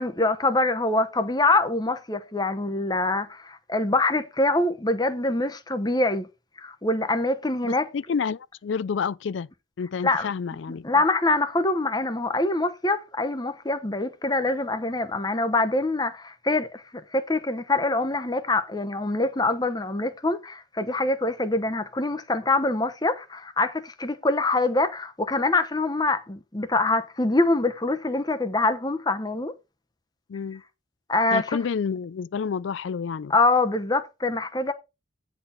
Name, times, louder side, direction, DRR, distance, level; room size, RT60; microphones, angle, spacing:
voice 1, 0.0-6.3 6.6-7.9 10.0-10.3 10.8-16.8 17.1-29.5 31.1-31.6 33.3-34.7, left 2 dB, 20° left, 0.9 m, -24 dB
voice 2, 7.6-9.5 9.8-10.9 30.3-30.6 31.3-33.3, left 6 dB, 70° left, 0.4 m, -29 dB
9.6 x 4.2 x 5.7 m
head